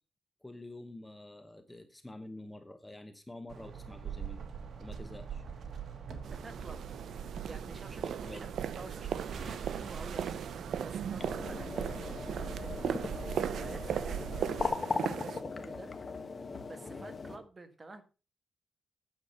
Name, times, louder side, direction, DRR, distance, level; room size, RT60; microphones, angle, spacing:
voice 1, 0.4-4.5 4.8-5.4 8.0-8.5 11.2-11.4 16.9-17.1, left 1 dB, 10° left, 8 dB, 1.1 m, -48 dB
sound 1, 3.5-14.7, right 7 dB, 60° right, 1.6 m, -42 dB
sound 2, 6.2-15.4, right 8 dB, 80° right, 0.5 m, -38 dB
voice 2, 6.3-6.8 7.5-10.4 10.8-16.4 16.7-18.0, right 3 dB, 30° right, 7 dB, 1.6 m, -51 dB
sound 3, 11.2-17.4, left 4 dB, 35° left, 1.3 m, -38 dB
9.4 x 7.5 x 5.6 m, 0.34 s
wide cardioid pair, 130°, 0 cm